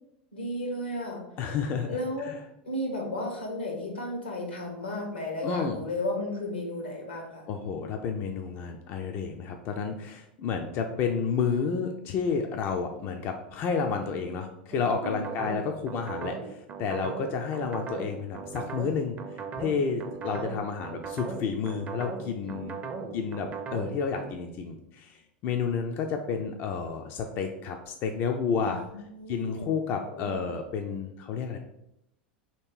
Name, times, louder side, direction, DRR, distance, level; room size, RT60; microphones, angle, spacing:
voice 1, 0.3-1.2 1.9-2.4 2.6-7.5 15.0-15.5 20.3-20.5 22.4-22.6 22.9-23.2 28.6-30.4, left 1 dB, 85° left, 0 dB, 1.2 m, -34 dB
voice 2, 1.4-1.9 5.4-5.8 7.5-19.2 19.6-22.8 23.1-28.8 29.3-31.6, left 5 dB, 45° left, 4 dB, 0.4 m, -30 dB
sound 1, 14.7-24.3, right 5 dB, 30° right, 0.6 m, -38 dB
3.1 x 2.9 x 4.4 m, 0.81 s
figure-of-eight pair, 85°, 5 cm